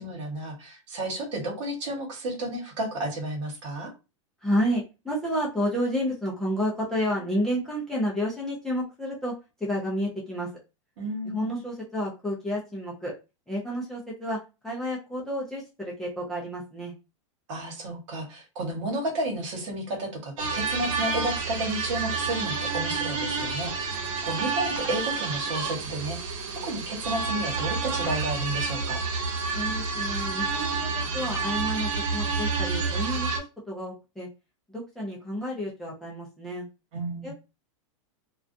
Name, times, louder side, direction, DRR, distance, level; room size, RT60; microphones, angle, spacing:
voice 1, 0.0-3.9 11.0-11.6 17.5-26.2 26.6-29.0 36.9-37.3, right 1 dB, 65° right, 1 dB, 1.1 m, -32 dB
voice 2, 4.4-10.5 11.3-13.1 13.5-16.9 29.5-34.3 34.7-36.7 37.2-37.3, equal, ahead, -4 dB, 0.4 m, -30 dB
sound 1, 20.4-33.4, right 4 dB, 85° right, 0.9 m, -29 dB
2.4 x 2.2 x 2.5 m, 0.28 s
supercardioid pair, 160°, 17 cm